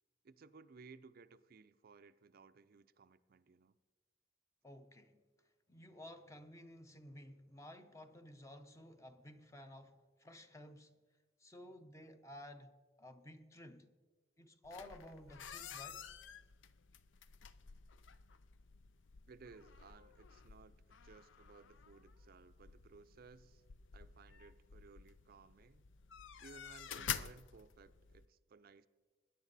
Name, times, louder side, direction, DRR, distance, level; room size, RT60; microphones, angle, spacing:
voice 1, 0.2-3.8 19.3-23.6 23.9-25.9 26.4-28.9, right 4 dB, 50° right, 0.4 m, -60 dB
voice 2, 4.6-5.2 5.7-11.0 11.4-13.9 14.4-16.0, left 1 dB, 15° left, 0.7 m, -54 dB
sound 1, 14.6-28.3, left 8 dB, 80° left, 0.5 m, -50 dB
21.0 x 10.0 x 4.0 m
head